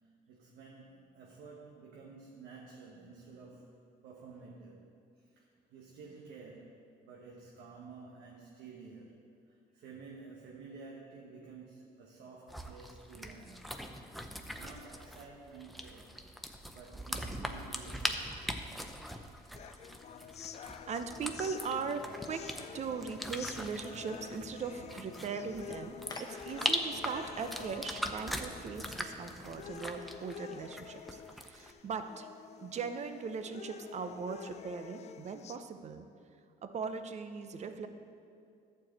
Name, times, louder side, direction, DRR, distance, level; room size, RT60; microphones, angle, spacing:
voice 1, 0.0-14.1 14.5-16.2 16.7-18.4, right 4 dB, 80° right, -1 dB, 1.1 m, -52 dB
sound 1, 12.5-31.7, equal, ahead, 0.6 m, -41 dB
sound 2, 19.6-35.6, left 8 dB, 40° left, 0.4 m, -48 dB
voice 2, 20.5-22.5 22.7-32.3 32.6-36.1 36.6-37.9, right 5 dB, 40° right, 9 dB, 0.7 m, -39 dB
Splash splatter, 21.2-29.8, left 2 dB, 25° left, 1.0 m, -53 dB
11.5 x 4.7 x 7.6 m, 2.4 s
cardioid pair, 110°, 17 cm